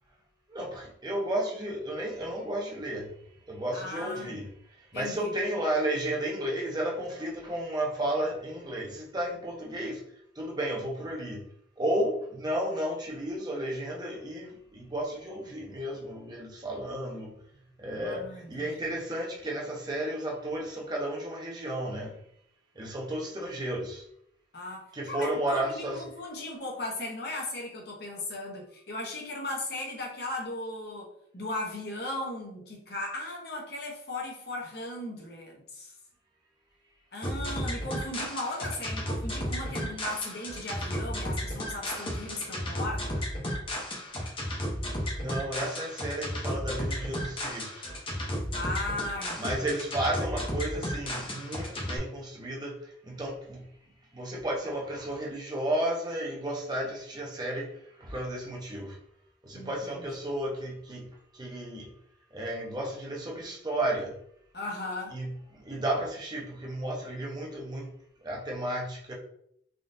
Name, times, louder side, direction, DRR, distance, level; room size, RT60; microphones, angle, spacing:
voice 1, 0.5-3.1 3.5-4.5 4.9-10.0 10.4-11.4 11.8-17.3 17.8-22.2 22.8-24.0 24.9-26.0 45.2-47.9 49.4-53.6 54.1-57.7 58.0-59.0 59.4-61.1 61.3-61.9 62.3-64.1 65.1-65.3 65.5-67.9 68.2-69.1, right 1 dB, 25° right, -2 dB, 0.7 m, -33 dB
voice 2, 3.7-4.3 4.9-5.3 17.9-18.9 24.5-31.1 31.3-35.9 37.1-43.3 48.5-49.7 59.5-60.1 64.5-65.1, left 2 dB, 60° left, 0 dB, 0.9 m, -37 dB
sound 1, 37.2-52.0, equal, 30° left, 0.7 m, -33 dB
3.6 x 2.4 x 2.6 m, 0.70 s
head